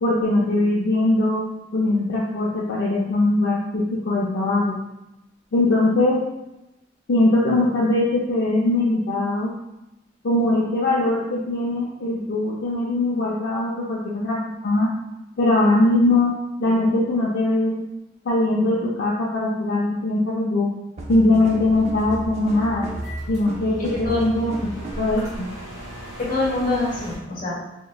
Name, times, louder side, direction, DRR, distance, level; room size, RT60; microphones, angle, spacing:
voice 1, 0.0-1.4 1.7-4.7 5.5-6.2 7.1-9.5 10.2-14.9 15.4-16.3 16.6-17.8 18.2-20.7 21.1-22.9 23.3-24.5 25.0-25.5, left 2 dB, 65° left, -5 dB, 0.5 m, -21 dB
sound 1, 21.0-25.2, right 1 dB, 35° right, 0.5 m, -34 dB
sound 2, 21.6-27.2, equal, 20° right, 1.2 m, -39 dB
voice 2, 26.2-27.7, left 3 dB, 45° left, -6 dB, 1.2 m, -25 dB
3.2 x 3.0 x 2.2 m, 0.94 s
head